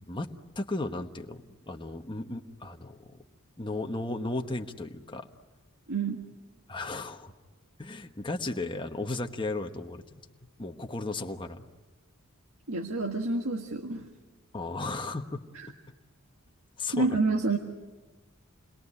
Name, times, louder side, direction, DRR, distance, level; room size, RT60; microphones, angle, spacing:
voice 1, 0.6-3.2 3.6-5.3 6.7-7.3 7.8-10.0 10.6-11.6 14.5-15.4 16.8-17.1, left 2 dB, 25° left, 4 dB, 1.2 m, -35 dB
voice 2, 5.9-6.3 12.7-14.1 15.5-15.7 16.9-17.6, right 3 dB, 70° right, 3 dB, 1.7 m, -28 dB
28.5 x 21.5 x 9.8 m, 1.2 s
head